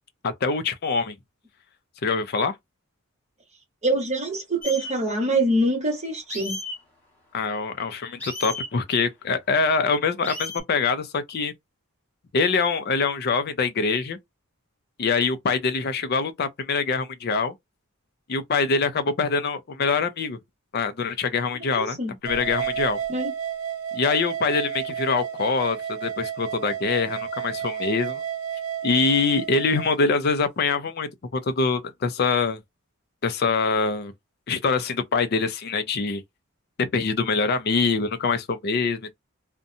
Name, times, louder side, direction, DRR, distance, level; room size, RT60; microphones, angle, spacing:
voice 1, 0.2-1.1 2.0-2.5 7.3-11.5 12.3-14.2 15.0-17.5 18.3-20.4 20.7-22.0 22.2-23.0 23.9-28.2 28.8-32.6 33.2-34.1 34.5-36.2 36.8-39.1, left 4 dB, 45° left, 0.4 m, -24 dB
voice 2, 3.8-6.6 21.7-22.1 23.1-23.3, right 1 dB, 30° right, 1.0 m, -24 dB
sound 1, 4.6-4.9 6.3-6.8 8.2-8.7 10.2-10.6, left 1 dB, 10° left, 1.3 m, -33 dB
sound 2, 22.3-29.9, right 8 dB, 85° right, 0.6 m, -31 dB
2.7 x 2.1 x 2.5 m
head